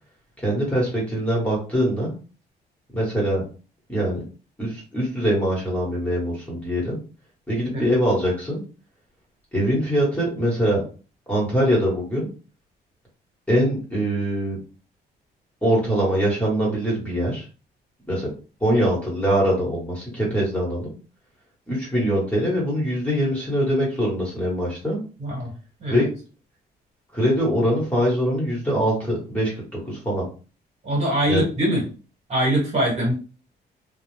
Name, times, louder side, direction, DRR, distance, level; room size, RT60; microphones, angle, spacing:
voice 1, 0.4-2.1 2.9-3.4 3.9-4.2 4.6-7.0 7.5-8.6 9.5-10.8 11.3-12.3 13.5-14.6 15.6-17.4 18.1-18.3 18.6-20.9 21.7-25.0 25.9-26.1 27.1-29.5 29.9-30.3 31.3-31.4, equal, 10° left, -4 dB, 1.1 m, -23 dB
voice 2, 25.2-25.5 25.8-26.1 30.8-31.8 32.3-33.1, right 1 dB, 40° right, -2 dB, 1.4 m, -22 dB
2.3 x 2.0 x 3.1 m, 0.35 s
cardioid pair, 120°, 17 cm